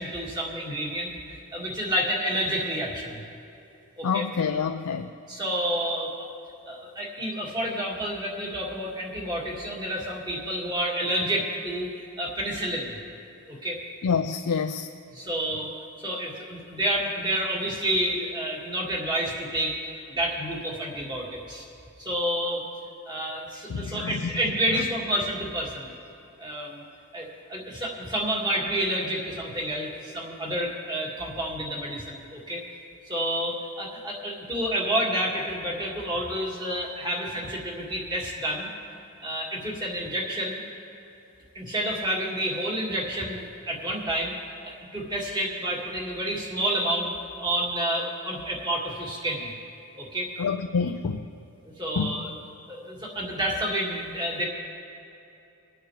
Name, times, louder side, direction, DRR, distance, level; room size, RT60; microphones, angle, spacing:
voice 1, 0.0-3.2 4.0-4.3 5.3-6.3 6.7-13.0 13.5-13.8 15.1-15.7 16.0-19.7 20.1-21.6 22.0-22.7 23.1-25.9 26.4-26.8 27.1-32.6 33.1-38.7 39.2-40.6 41.5-44.3 44.6-47.1 47.4-49.5 50.0-50.3 51.8-52.4 52.7-54.5, right 1 dB, 20° right, -3 dB, 2.0 m, -29 dB
voice 2, 4.0-5.1 14.0-14.9 23.7-24.3 50.4-51.3 52.0-52.2, left 5 dB, 85° left, 5 dB, 0.4 m, -27 dB
25.0 x 9.0 x 3.3 m, 2.8 s
head